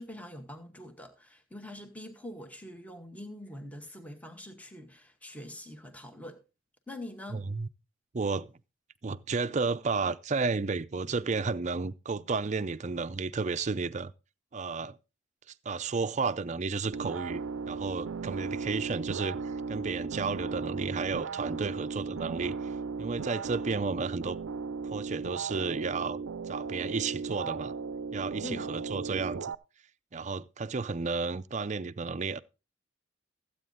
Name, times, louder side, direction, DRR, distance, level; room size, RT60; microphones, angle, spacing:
voice 1, 0.0-6.4 6.9-7.4 28.4-28.7, left 1 dB, 5° left, 1.1 m, -44 dB
voice 2, 7.3-7.7 8.1-8.5 9.0-14.1 14.5-15.0 15.7-22.7 23.0-24.4 24.8-26.2 26.5-27.7 28.1-29.5 30.1-32.4, right 4 dB, 35° right, 0.5 m, -32 dB
sound 1, 16.9-29.6, right 5 dB, 90° right, 0.5 m, -36 dB
14.0 x 8.5 x 3.9 m
head